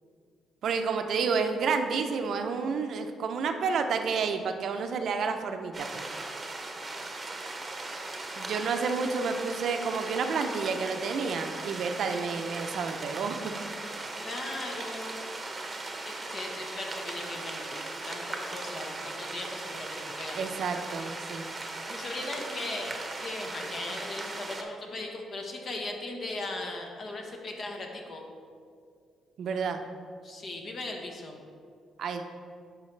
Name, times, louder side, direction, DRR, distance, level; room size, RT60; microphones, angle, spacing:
voice 1, 0.6-6.0 8.4-13.5 20.3-21.4 29.4-29.8 32.0-32.2, right 5 dB, 65° right, 6 dB, 0.5 m, -30 dB
sound 1, 5.7-24.6, right 2 dB, 25° right, 0.9 m, -38 dB
voice 2, 14.2-15.2 16.0-17.8 18.1-20.4 21.9-28.2 30.2-31.3, left 2 dB, 45° left, 2 dB, 1.1 m, -38 dB
10.5 x 4.7 x 3.2 m, 2.2 s
cardioid pair, 90°, 0 cm